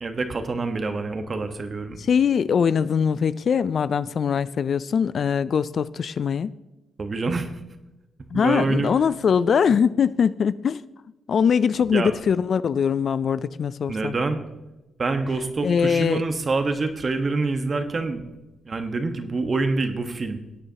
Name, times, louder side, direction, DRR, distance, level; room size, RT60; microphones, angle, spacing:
voice 1, 0.0-2.0 7.0-7.6 8.3-8.9 11.9-12.1 13.9-14.4 15.0-18.2 18.6-20.4, right 3 dB, 40° right, 7 dB, 1.2 m, -26 dB
voice 2, 2.0-6.5 8.3-10.8 11.3-14.1 15.6-16.2, left 7 dB, 60° left, 17 dB, 0.3 m, -22 dB
17.0 x 8.8 x 2.9 m, 0.99 s
cardioid pair, 80°, 0 cm